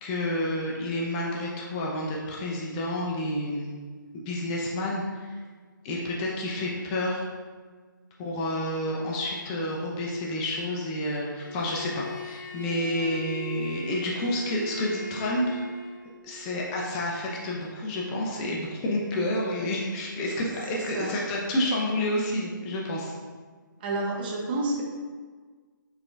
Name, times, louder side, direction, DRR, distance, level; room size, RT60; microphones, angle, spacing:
voice 1, 0.0-3.8 4.1-5.3 5.8-7.3 8.2-15.6 16.2-23.1, left 1 dB, 20° left, -3 dB, 0.5 m, -29 dB
Bowed string instrument, 11.4-16.2, equal, 60° left, 0.8 m, -39 dB
voice 2, 20.7-21.3 23.8-24.8, right 2 dB, 25° right, -1 dB, 0.7 m, -30 dB
4.7 x 4.3 x 2.4 m, 1.5 s
figure-of-eight pair, 150°, 11 cm